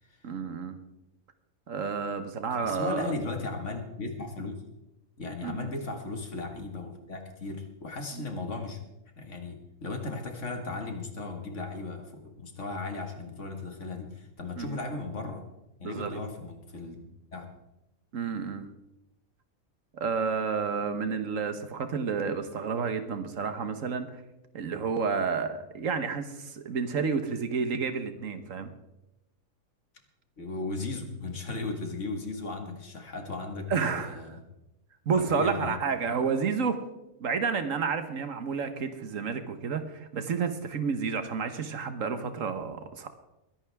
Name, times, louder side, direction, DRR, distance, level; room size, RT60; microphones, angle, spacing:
voice 1, 0.2-0.8 1.7-3.1 5.4-5.7 14.6-14.8 15.8-16.2 18.1-18.7 19.9-24.2 24.5-28.7 33.7-34.2 35.1-36.8 37.2-43.1, right 5 dB, 75° right, 9 dB, 1.5 m, -30 dB
voice 2, 2.6-4.6 5.2-8.8 9.2-15.4 15.8-17.5 30.4-34.4 35.2-35.8, left 3 dB, 65° left, 4 dB, 2.1 m, -36 dB
22.0 x 10.5 x 3.5 m, 0.94 s
omnidirectional pair, 1.4 m